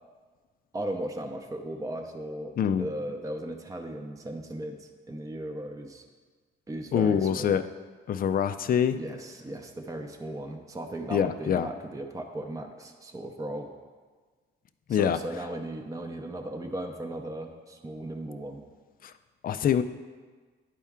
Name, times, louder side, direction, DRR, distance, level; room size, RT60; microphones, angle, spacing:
voice 1, 0.7-6.0 6.7-7.6 8.9-13.7 14.9-18.6, right 1 dB, 15° right, 4 dB, 0.7 m, -37 dB
voice 2, 6.9-7.6 8.1-9.0 11.1-11.7 14.9-15.2 19.0-19.1 19.4-19.8, left 8 dB, 45° left, 12 dB, 0.4 m, -25 dB
11.0 x 4.4 x 3.6 m, 1.5 s
cardioid pair, 90°, 20 cm